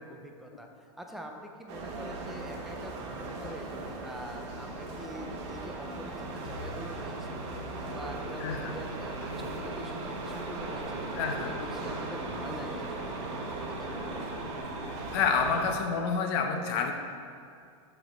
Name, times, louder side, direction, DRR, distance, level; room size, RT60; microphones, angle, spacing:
voice 1, 0.0-7.5 7.8-14.0, right 1 dB, ahead, 2 dB, 0.4 m, -45 dB
sound 1, 1.7-15.7, right 2 dB, 55° right, 1.0 m, -38 dB
sound 2, 6.6-15.6, equal, 75° right, 0.6 m, -49 dB
voice 2, 8.4-8.7 11.2-11.5 15.1-16.9, left 5 dB, 50° left, 4 dB, 0.7 m, -28 dB
6.0 x 3.5 x 5.2 m, 2.3 s
supercardioid pair, 145°, 17 cm